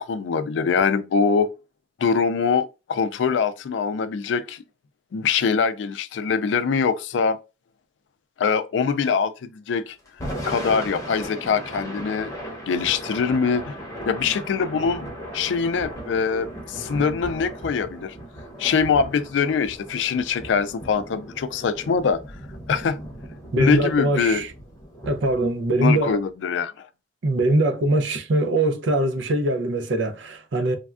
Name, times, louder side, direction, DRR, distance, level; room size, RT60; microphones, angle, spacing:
voice 1, 0.0-1.5 2.0-4.6 5.1-7.4 8.4-10.0 10.5-12.3 12.7-13.7 14.1-15.1 15.3-18.1 18.6-22.2 22.7-23.0 23.6-24.4 25.8-26.9, left 5 dB, 80° left, 0.3 m, -23 dB
Thunder / Rain, 10.1-26.3, equal, 15° left, 0.8 m, -37 dB
voice 2, 23.5-24.5 25.1-26.2 27.2-30.8, right 1 dB, 80° right, 0.5 m, -22 dB
3.3 x 2.2 x 2.4 m
head